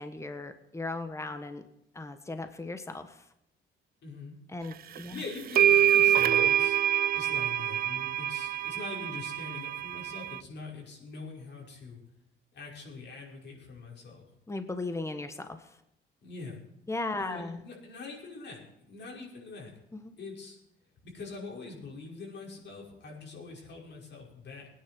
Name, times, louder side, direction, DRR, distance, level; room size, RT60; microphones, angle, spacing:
voice 1, 0.0-1.6 1.9-3.2 4.5-5.2 14.5-15.8 16.9-17.6 19.9-20.1, left 2 dB, 15° left, 8 dB, 1.4 m, -37 dB
voice 2, 4.0-4.4 5.1-6.8 7.1-12.0 12.5-14.3 16.2-16.6 17.2-19.8 20.2-20.6 21.0-24.7, left 4 dB, 60° left, -2 dB, 5.9 m, -43 dB
sound 1, 4.9-5.0 5.5-10.4, right 10 dB, 50° right, 0.4 m, -25 dB
18.5 x 9.9 x 6.1 m, 0.83 s
cardioid pair, 90°, 20 cm